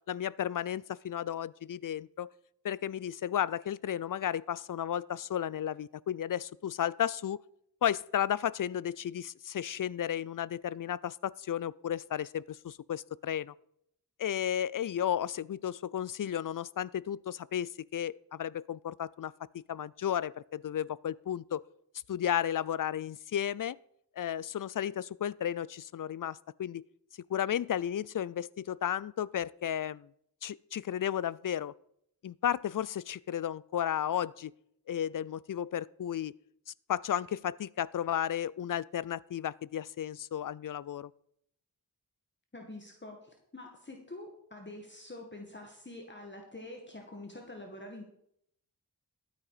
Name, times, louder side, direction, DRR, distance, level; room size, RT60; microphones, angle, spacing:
voice 1, 0.1-2.3 2.6-7.4 7.8-13.5 14.2-19.3 19.7-21.6 22.1-23.8 24.2-26.8 27.3-30.1 30.4-31.7 32.2-34.5 34.9-36.3 36.9-41.1, left 10 dB, 55° left, 22 dB, 0.4 m, -33 dB
voice 2, 42.5-48.1, left 2 dB, 30° left, 2 dB, 1.9 m, -46 dB
13.0 x 9.0 x 4.9 m, 0.71 s
wide cardioid pair, 80°, 39 cm